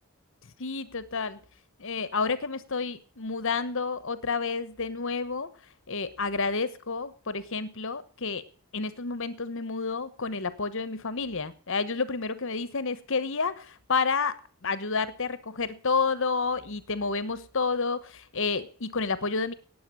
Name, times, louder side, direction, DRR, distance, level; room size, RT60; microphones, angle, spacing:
voice 1, 0.6-1.4 1.8-5.5 5.9-8.4 8.7-14.4 14.6-19.5, left 4 dB, 60° left, 14 dB, 1.1 m, -30 dB
18.5 x 7.7 x 6.2 m, 0.43 s
head